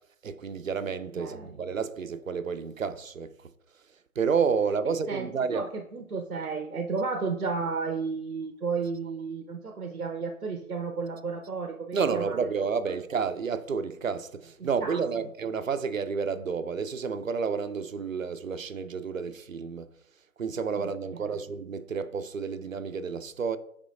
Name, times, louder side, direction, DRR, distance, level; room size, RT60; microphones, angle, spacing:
voice 1, 0.2-3.3 4.2-5.6 11.9-19.9 20.4-23.6, right 5 dB, 60° right, 0.6 m, -30 dB
voice 2, 1.2-1.6 5.1-12.4 12.8-13.0 14.6-15.0 20.8-21.3, right 4 dB, 85° right, 0.9 m, -33 dB
8.5 x 5.1 x 2.5 m
figure-of-eight pair, 155°, 44 cm